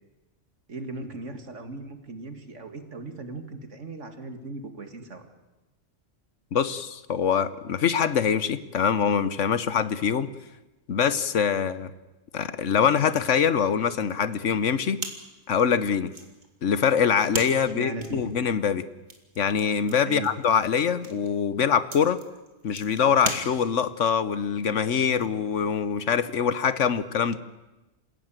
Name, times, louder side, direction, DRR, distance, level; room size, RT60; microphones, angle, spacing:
voice 1, 0.7-5.3 17.7-18.3 20.0-20.3, right 3 dB, 75° right, 7 dB, 2.5 m, -37 dB
voice 2, 6.5-10.3 10.9-11.9 12.3-15.0 15.5-16.1 16.6-18.8 19.4-22.2 22.6-27.4, left 7 dB, 75° left, 14 dB, 1.3 m, -24 dB
sound 1, 15.0-24.0, right 2 dB, 40° right, 2.6 m, -39 dB
27.5 x 16.0 x 9.1 m, 1.1 s
omnidirectional pair, 1.3 m